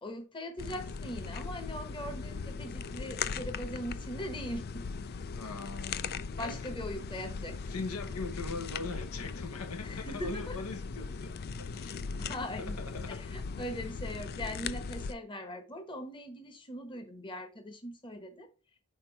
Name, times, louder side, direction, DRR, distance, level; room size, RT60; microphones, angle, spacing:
voice 1, 0.0-4.8 6.4-7.6 9.8-10.6 12.2-12.8 13.1-18.5, equal, 20° left, 1.0 m, -40 dB
sound 1, 0.6-15.1, left 5 dB, 45° left, 0.4 m, -39 dB
voice 2, 5.3-6.8 7.6-13.2, left 3 dB, 80° left, 1.0 m, -42 dB
5.9 x 4.4 x 4.5 m
head